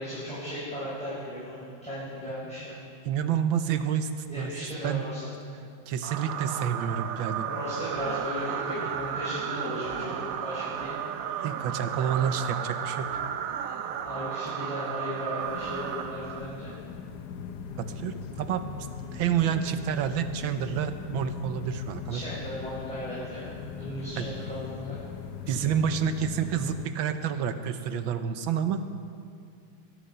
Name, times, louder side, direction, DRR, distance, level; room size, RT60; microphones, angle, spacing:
voice 1, 0.0-2.7 4.3-5.2 7.5-10.9 14.1-16.7 22.1-25.0, equal, 5° left, -10 dB, 5.2 m, -36 dB
voice 2, 3.0-4.1 4.4-5.0 5.6-7.5 11.4-13.2 17.8-18.7 19.1-22.2 24.2-24.3 25.5-28.8, right 8 dB, 70° right, 9 dB, 1.5 m, -29 dB
sound 1, 6.0-16.8, right 8 dB, 90° right, 0.7 m, -34 dB
sound 2, 15.4-26.9, left 7 dB, 65° left, 1.1 m, -40 dB
22.0 x 11.5 x 5.6 m, 2.3 s
omnidirectional pair, 2.3 m